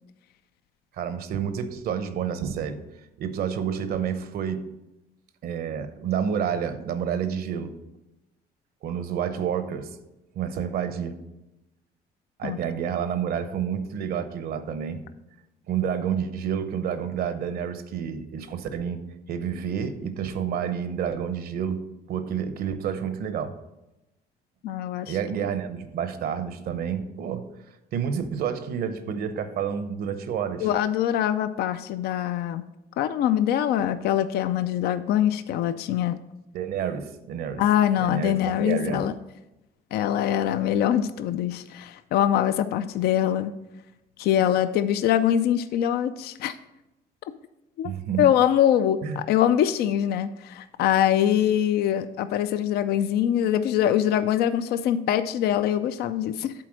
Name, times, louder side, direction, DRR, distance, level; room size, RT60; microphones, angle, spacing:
voice 1, 0.9-2.8 3.2-4.7 5.4-7.7 8.8-9.9 10.4-11.2 12.4-15.0 15.7-19.0 19.3-23.5 25.1-27.5 27.9-30.7 36.5-37.6 38.0-39.1 47.8-48.3 49.0-49.2, right 8 dB, 65° right, 11 dB, 0.8 m, -29 dB
voice 2, 24.6-25.1 30.6-32.6 33.0-36.2 37.6-39.1 39.9-43.5 44.2-46.6 47.8-47.9 48.2-56.5, left 10 dB, 70° left, 12 dB, 0.4 m, -23 dB
7.6 x 4.2 x 6.3 m, 0.95 s
cardioid pair, 110°, 17 cm